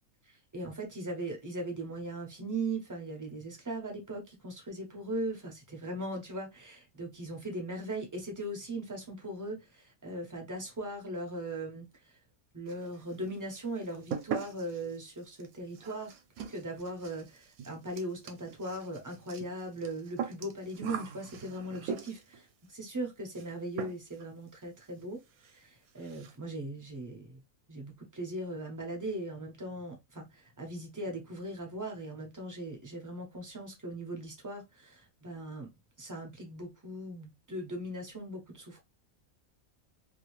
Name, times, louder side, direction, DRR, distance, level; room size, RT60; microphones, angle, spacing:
voice 1, 0.5-11.9 12.5-16.1 16.5-25.2 25.5-27.4 27.7-35.7 36.0-38.8, right 1 dB, 25° right, 0.4 m, -39 dB
sound 1, 12.7-13.2 13.5-22.4 23.3-23.5 23.8-24.3 24.5-24.6 25.0-25.1 25.4-25.6 25.9-26.4, right 7 dB, 80° right, 1.0 m, -41 dB
2.6 x 2.5 x 3.0 m
omnidirectional pair, 1.5 m